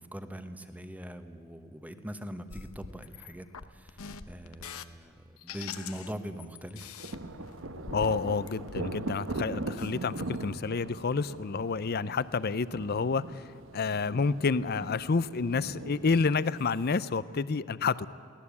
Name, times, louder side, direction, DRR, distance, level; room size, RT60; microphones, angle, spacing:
voice 1, 0.0-4.0 4.3-6.9, equal, 5° right, 9 dB, 1.1 m, -42 dB
sound 1, 2.5-4.8 5.4-6.1 6.4-9.3 9.6-10.0 10.4-10.5, left 6 dB, 80° left, 0.9 m, -44 dB
sound 2, 7.0-17.0, right 2 dB, 65° right, 1.1 m, -40 dB
voice 2, 7.9-13.4 13.7-18.1, left 4 dB, 45° left, 17 dB, 0.6 m, -29 dB
23.0 x 17.5 x 8.4 m, 2.5 s
head